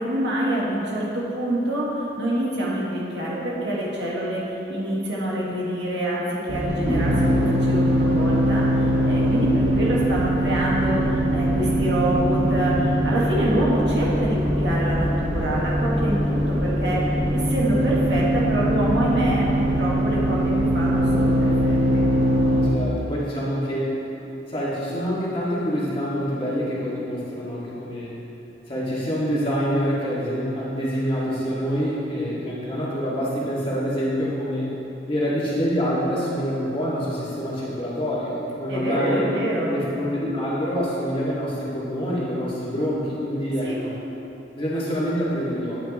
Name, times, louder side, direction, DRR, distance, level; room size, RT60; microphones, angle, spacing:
voice 1, 0.0-8.7 9.0-17.0 17.3-22.0 38.7-39.8 43.6-43.8, right 1 dB, 75° right, -5 dB, 1.8 m, -26 dB
sound 1, 6.5-22.7, equal, 40° right, 1.3 m, -22 dB
voice 2, 22.6-24.0 24.5-28.1 28.7-34.8 35.1-39.3 39.7-43.9 44.5-45.8, equal, 30° left, -7 dB, 1.9 m, -26 dB
8.9 x 8.7 x 3.1 m, 3.0 s
head